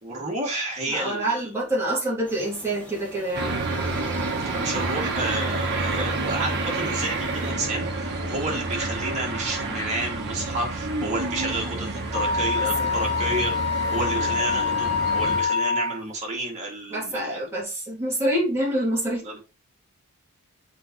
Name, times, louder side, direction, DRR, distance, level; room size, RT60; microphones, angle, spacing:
voice 1, 0.0-1.4 4.5-13.5 13.9-17.4 19.2-19.4, right 2 dB, 30° right, 2.7 m, -30 dB
voice 2, 0.9-3.6 12.8-13.0 16.9-19.4, right 1 dB, 10° right, 3.2 m, -27 dB
sound 1, 2.2-7.5, equal, 5° left, 2.5 m, -45 dB
sound 2, 3.3-15.4, right 2 dB, 50° right, 1.4 m, -29 dB
Wind instrument woodwind instrument, 12.1-16.0, left 5 dB, 25° left, 1.6 m, -25 dB
6.9 x 5.4 x 3.3 m
head